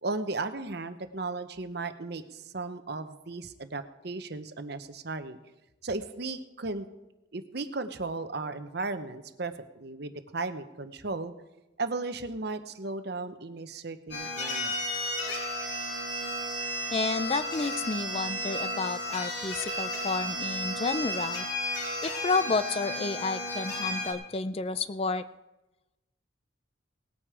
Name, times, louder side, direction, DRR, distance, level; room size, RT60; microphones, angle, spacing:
voice 1, 0.0-5.4 5.8-6.9 7.3-11.3 11.8-14.8, right 3 dB, 55° right, 10 dB, 0.9 m, -35 dB
sound 1, 14.1-24.1, left 1 dB, 60° left, 3.3 m, -33 dB
voice 2, 16.9-21.5 22.0-25.3, left 4 dB, 30° left, 13 dB, 0.4 m, -31 dB
18.5 x 9.0 x 4.9 m, 0.99 s
head